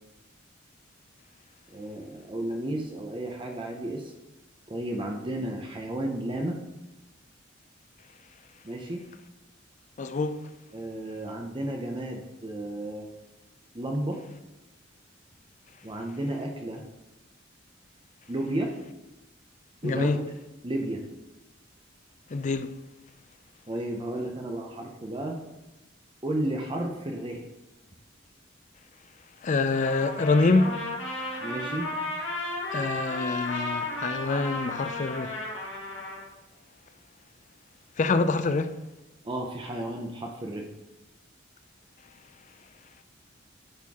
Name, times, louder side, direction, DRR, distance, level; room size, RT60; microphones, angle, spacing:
voice 1, 1.7-4.1 4.7-6.6 8.6-9.0 10.7-13.1 13.7-14.2 15.8-16.8 18.3-18.7 19.8-20.1 20.6-21.0 23.7-25.4 26.2-27.4 31.4-31.9 39.2-40.7, right 1 dB, 25° right, 0.7 m, -32 dB
voice 2, 10.0-10.4 19.8-20.2 22.3-22.7 29.4-30.7 32.7-35.3 38.0-38.8, left 3 dB, 40° left, 0.4 m, -25 dB
Trumpet, 29.7-36.2, left 2 dB, 90° left, 2.1 m, -34 dB
10.5 x 4.4 x 3.6 m
head